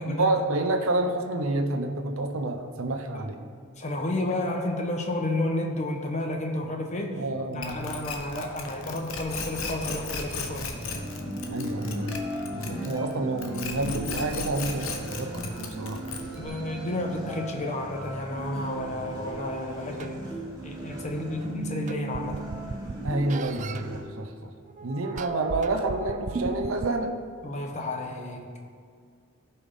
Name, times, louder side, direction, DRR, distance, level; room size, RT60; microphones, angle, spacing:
voice 1, 0.0-3.4 7.2-7.8 11.5-12.2 12.5-16.2 18.9-19.0 23.0-24.5 24.8-27.1, right 2 dB, 80° right, 5 dB, 0.8 m, -29 dB
voice 2, 3.8-7.2 7.5-10.7 16.3-20.3 20.6-22.4 27.4-28.6, left 1 dB, 35° left, 2 dB, 1.0 m, -31 dB
sound 1, 7.6-13.1 13.4-16.5, left 4 dB, 80° left, 1.0 m, -35 dB
sound 2, 10.7-24.0, right 1 dB, 20° right, 2.1 m, -37 dB
sound 3, 19.3-19.4 20.0-20.1 21.4-21.5 21.9-23.8 24.7-27.3, right 3 dB, 35° right, 0.3 m, -35 dB
16.0 x 5.6 x 3.7 m, 2.2 s
head